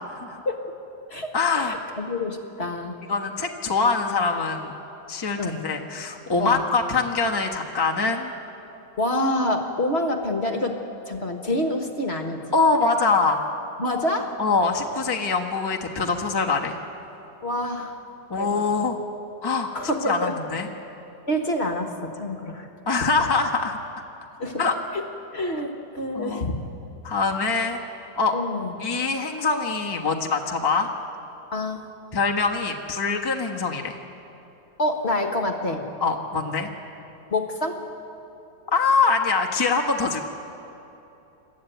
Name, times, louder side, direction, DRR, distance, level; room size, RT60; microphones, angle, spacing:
voice 1, 0.1-0.4 1.3-1.8 3.1-4.7 5.1-8.3 12.5-13.4 14.4-16.8 18.3-19.0 19.4-19.7 20.1-20.7 22.9-23.8 24.6-24.7 26.1-26.5 27.0-27.8 28.2-28.3 28.8-30.9 32.1-34.0 36.0-36.7 38.7-40.2, left 4 dB, 15° left, 0 dB, 1.1 m, -24 dB
voice 2, 1.6-3.0 5.4-5.6 6.4-6.6 9.0-10.8 11.1-12.4 13.8-14.3 17.4-18.0 18.3-18.6 19.7-20.6 21.3-23.1 24.4-24.6 24.9-25.0 25.3-26.6 28.3-28.7 31.5-31.9 34.8-35.8 37.3-37.8, left 1 dB, 40° left, 4 dB, 1.6 m, -27 dB
27.0 x 13.0 x 9.3 m, 3.0 s
omnidirectional pair, 1.9 m